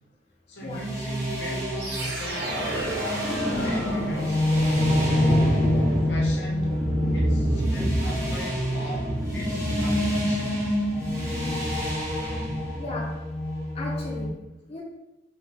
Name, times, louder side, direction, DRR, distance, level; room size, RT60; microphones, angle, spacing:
voice 1, 0.5-2.6 2.9-4.4 5.2-6.7 7.1-10.6, equal, 65° left, -1 dB, 0.9 m, -39 dB
sound 1, 0.6-14.3, left 1 dB, 15° right, 1.0 m, -27 dB
sound 2, 1.8-12.9, equal, 65° right, 1.2 m, -29 dB
voice 2, 5.3-5.7 11.4-11.7 12.7-13.1 13.7-14.3 14.7-14.8, left 2 dB, 35° left, -3 dB, 0.5 m, -36 dB
5.2 x 2.3 x 3.4 m, 0.98 s
head